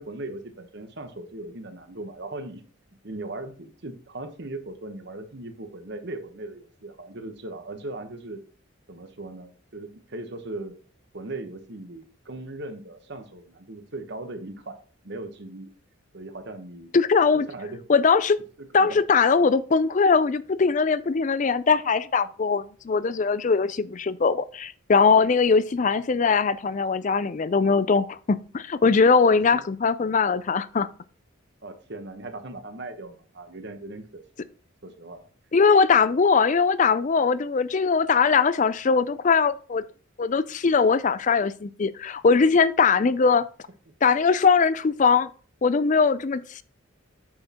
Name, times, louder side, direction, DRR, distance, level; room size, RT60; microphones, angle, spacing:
voice 1, 0.0-2.6 3.0-8.4 8.9-10.8 11.1-14.8 15.0-15.7 16.1-16.9 17.3-17.8 18.6-19.0 29.2-29.6 31.6-34.5 34.8-35.2, right 2 dB, 55° right, 1.1 m, -38 dB
voice 2, 16.9-17.5 17.9-18.4 18.7-30.9 35.5-39.8 40.2-43.4 44.0-45.3 45.6-46.6, left 5 dB, 35° left, 0.4 m, -21 dB
8.8 x 6.3 x 2.9 m
head